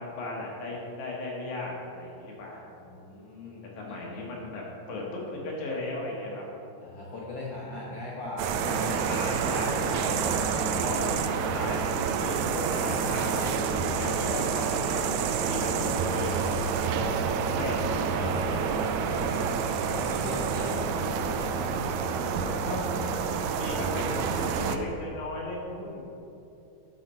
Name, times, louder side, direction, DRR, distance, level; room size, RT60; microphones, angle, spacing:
voice 1, 0.0-2.6 3.8-6.4 9.1-11.1 11.5-15.2 15.5-16.4 17.5-19.5 20.5-20.9 22.6-23.0 23.5-26.0, left 2 dB, 70° left, -3 dB, 2.9 m, -36 dB
voice 2, 2.8-3.7 4.2-4.4 6.8-9.0 17.0-17.7 19.8-20.7 21.0-22.4, left 2 dB, 85° left, -5 dB, 1.0 m, -40 dB
sound 1, 8.4-24.8, right 6 dB, 80° right, 1.7 m, -28 dB
11.0 x 6.5 x 4.3 m, 2.7 s
omnidirectional pair, 3.7 m